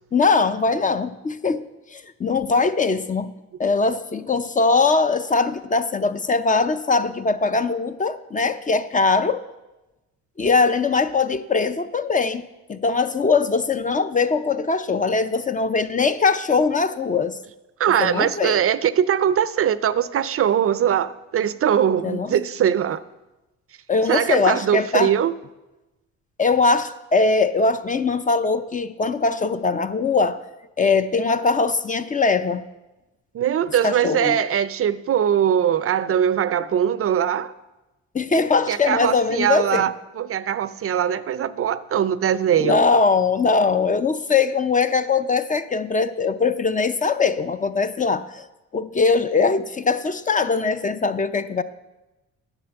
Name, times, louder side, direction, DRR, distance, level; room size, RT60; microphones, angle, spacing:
voice 1, 0.1-1.6 1.9-3.3 3.6-9.4 10.4-12.4 12.7-17.4 18.0-18.6 22.0-22.3 23.9-25.1 26.4-30.4 30.8-32.6 33.8-34.4 38.1-39.8 42.6-48.4 48.7-51.6, left 4 dB, 25° left, 11 dB, 0.5 m, -21 dB
voice 2, 17.8-23.0 24.1-25.3 33.3-37.5 38.7-42.8, right 9 dB, 50° right, 16 dB, 0.5 m, -21 dB
9.8 x 7.2 x 6.9 m, 1.0 s
cardioid pair, 90°, 30 cm